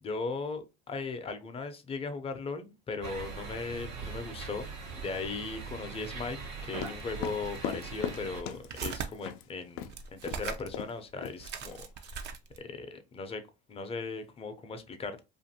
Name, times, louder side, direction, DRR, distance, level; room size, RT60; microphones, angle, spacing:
voice 1, 0.0-9.8 10.1-12.3 12.6-13.4 13.7-15.2, left 4 dB, 25° left, 0.6 m, -38 dB
sound 1, 3.0-8.4, right 4 dB, 85° right, 1.0 m, -41 dB
sound 2, 6.7-9.4 9.8-10.0 10.3-10.4 10.7-11.0 11.2-11.8, left 10 dB, 75° left, 0.4 m, -39 dB
sound 3, 7.3-7.4 8.1-9.1 9.8-10.8 11.1-11.2 11.4-12.7, right 6 dB, 55° right, 0.5 m, -39 dB
2.5 x 2.5 x 2.7 m
supercardioid pair, 90°, 21 cm